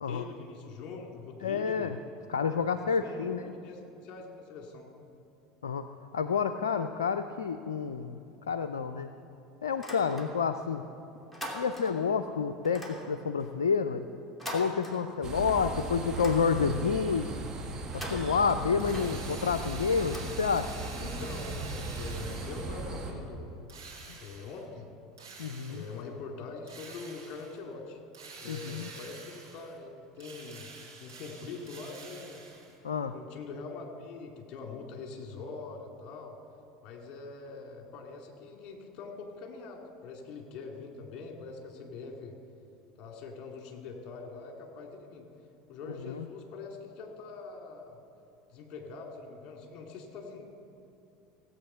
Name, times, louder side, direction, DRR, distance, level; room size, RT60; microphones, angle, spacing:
voice 1, 0.1-1.9 3.0-4.9 21.0-23.5 24.2-24.9 25.7-28.0 28.4-30.7 31.0-32.4 33.1-36.3 36.8-42.3 43.0-45.3 45.7-48.0 48.5-50.5, left 4 dB, 50° left, 2 dB, 2.4 m, -43 dB
voice 2, 1.4-2.0 2.3-3.4 5.6-5.9 6.1-9.1 9.6-10.8 11.5-14.0 14.5-17.2 17.9-20.8 24.1-24.2 25.4-25.8 28.4-28.9 32.8-33.1 46.0-46.2, left 6 dB, 80° left, 10 dB, 0.4 m, -29 dB
sound 1, 9.7-10.7 11.0-12.1 12.6-15.5 15.8-17.0 17.8-20.9, equal, 5° left, 2.5 m, -44 dB
sound 2, 15.2-23.1, right 2 dB, 30° right, 2.1 m, -38 dB
Drill, 18.8-22.9 23.7-24.6 25.2-26.0 26.7-27.6 28.1-29.8 30.2-32.8, right 4 dB, 80° right, 2.8 m, -48 dB
17.0 x 8.1 x 5.6 m, 2.8 s
hypercardioid pair, 75°, 2 cm